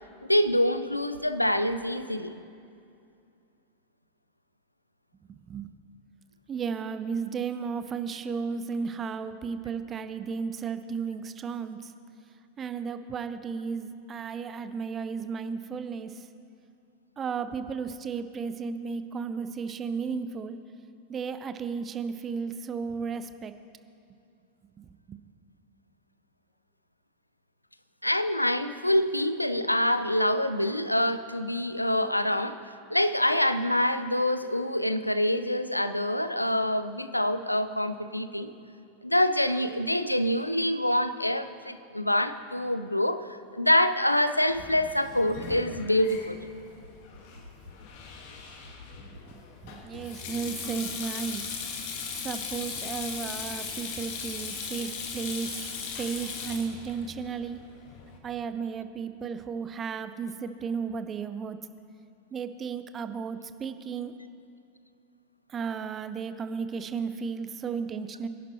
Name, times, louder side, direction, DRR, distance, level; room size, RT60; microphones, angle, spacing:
voice 1, 0.2-2.4 28.0-32.6 32.9-38.5 39.0-43.3 43.5-46.4, left 1 dB, 85° left, 12 dB, 0.5 m, -26 dB
voice 2, 6.5-11.8 12.6-16.1 17.2-20.6 21.1-23.5 24.8-25.2 49.0-49.2 49.6-51.4 52.2-55.5 56.0-57.6 58.2-61.6 62.3-64.1 65.5-68.3, right 6 dB, 25° right, 11 dB, 0.6 m, -34 dB
Sink (filling or washing), 44.5-58.2, left 5 dB, 50° left, 1.6 m, -39 dB
23.0 x 11.0 x 3.0 m, 2.5 s
figure-of-eight pair, 90°, 0 cm